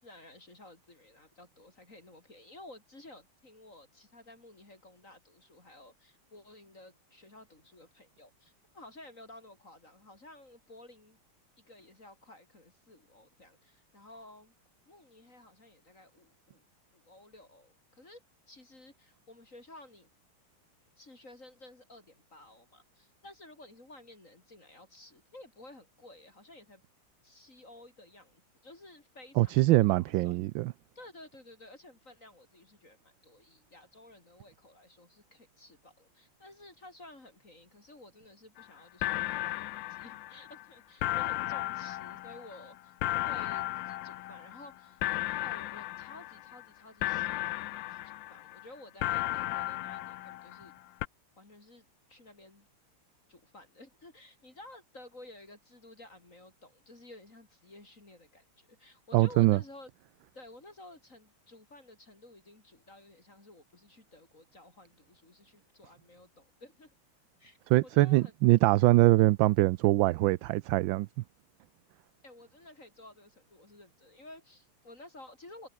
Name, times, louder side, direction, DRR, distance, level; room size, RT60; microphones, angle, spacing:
voice 1, 0.0-11.2 11.6-14.5 14.9-16.6 16.9-20.1 21.0-26.8 27.2-30.4 31.0-42.9 43.2-45.0 45.4-50.7 51.4-52.7 53.3-59.9 60.3-66.9 67.4-68.3 72.2-75.7, left 2 dB, 35° left, 4.3 m, -53 dB
voice 2, 29.4-30.7 59.1-59.6 67.7-71.1, right 18 dB, 75° right, 1.2 m, -23 dB
sound 1, 38.6-38.7 39.0-40.6 41.0-44.7 45.0-46.6 47.0-48.6 49.0-50.7 51.0-51.1, left 16 dB, 70° left, 1.2 m, -35 dB
omnidirectional pair, 2.4 m